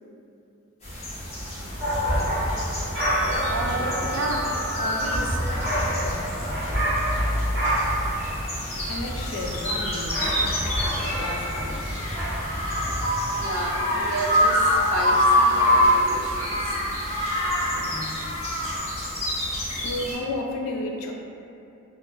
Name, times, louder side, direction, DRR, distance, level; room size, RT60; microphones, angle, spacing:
sound 1, 0.8-20.1, left 1 dB, 30° left, 0.6 m, -26 dB
sound 2, 1.8-13.1, equal, 45° right, 1.2 m, -28 dB
Percussion / Church bell, 2.9-8.0, right 1 dB, 5° right, 1.5 m, -36 dB
voice 1, 3.5-4.5 4.8-5.5 13.4-16.8, right 2 dB, 60° right, 0 dB, 0.3 m, -31 dB
voice 2, 8.6-12.0 17.7-18.3 19.7-21.1, left 2 dB, 80° left, 1 dB, 0.3 m, -34 dB
2.8 x 2.1 x 2.2 m, 2.6 s
head